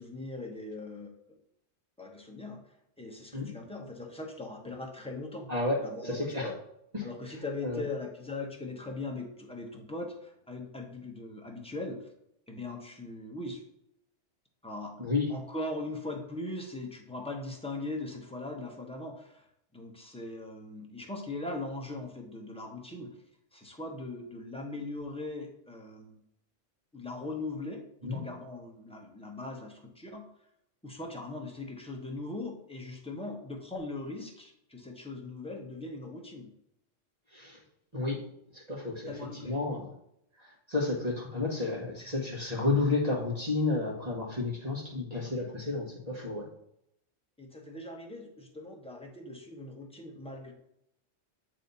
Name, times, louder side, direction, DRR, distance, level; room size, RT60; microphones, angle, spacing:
voice 1, 0.0-1.4 2.0-2.6 3.0-5.5 5.8-6.5 7.0-12.1 12.5-13.6 14.6-14.9 15.3-19.5 19.7-23.2 23.5-26.2 26.9-30.2 30.8-36.5 39.1-39.6 47.4-50.5, left 2 dB, 5° left, 0 dB, 1.0 m, -40 dB
voice 2, 6.0-6.5 6.9-7.1 7.6-7.8 15.0-15.3 28.0-28.2 37.3-37.6 37.9-38.2 38.5-39.1 39.4-39.9 40.4-46.5, left 3 dB, 35° right, -3 dB, 1.6 m, -31 dB
8.6 x 3.3 x 4.1 m, 0.76 s
omnidirectional pair, 1.3 m